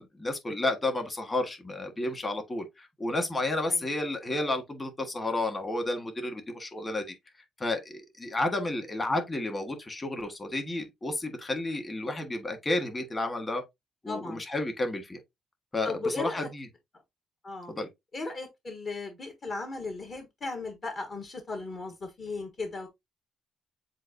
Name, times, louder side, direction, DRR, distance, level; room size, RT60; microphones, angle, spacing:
voice 1, 0.0-7.1 7.6-13.6 14.0-15.2 15.7-16.7 17.7-17.9, left 2 dB, 25° left, 1.5 m, -31 dB
voice 2, 14.1-14.4 15.8-16.5 17.4-17.7 18.1-22.9, left 3 dB, 45° left, 1.2 m, -36 dB
7.4 x 2.5 x 2.7 m
cardioid pair, 90°, 0 cm